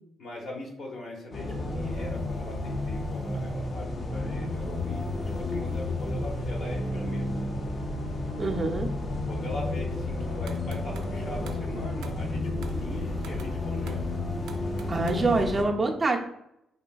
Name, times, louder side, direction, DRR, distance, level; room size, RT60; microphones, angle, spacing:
voice 1, 0.2-7.5 9.2-14.1 15.1-16.0, left 2 dB, 60° left, 0 dB, 1.0 m, -41 dB
sound 1, 1.3-15.6, left 2 dB, 40° left, 0.5 m, -31 dB
voice 2, 8.4-8.9 14.9-16.2, right 3 dB, 25° right, 1 dB, 0.5 m, -25 dB
sound 2, 10.5-11.2 11.5-11.7 12.0-12.2 12.6-12.8 13.2-13.6 13.9-14.1 14.5-15.2, right 6 dB, 90° right, 0.3 m, -46 dB
3.3 x 2.6 x 2.3 m, 0.81 s
cardioid pair, 90°, 0 cm